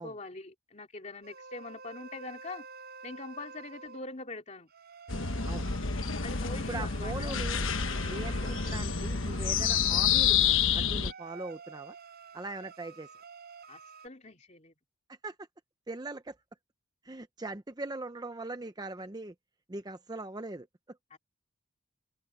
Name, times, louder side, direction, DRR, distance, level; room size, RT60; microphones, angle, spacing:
voice 1, 0.0-2.7 3.0-4.7 6.2-7.4 13.7-14.7 21.1-21.2, left 3 dB, 35° left, 2.6 m, -43 dB
sound 1, 1.2-4.0 4.7-10.5 11.0-14.1, right 5 dB, 45° right, 6.7 m, -49 dB
sound 2, 5.1-11.1, left 7 dB, 65° left, 1.2 m, -28 dB
voice 2, 6.7-7.7 8.1-10.4 10.7-11.9 12.3-13.1 15.1-15.3 15.9-16.4 17.0-19.3 19.7-21.0, right 2 dB, 20° right, 0.7 m, -40 dB
open air
head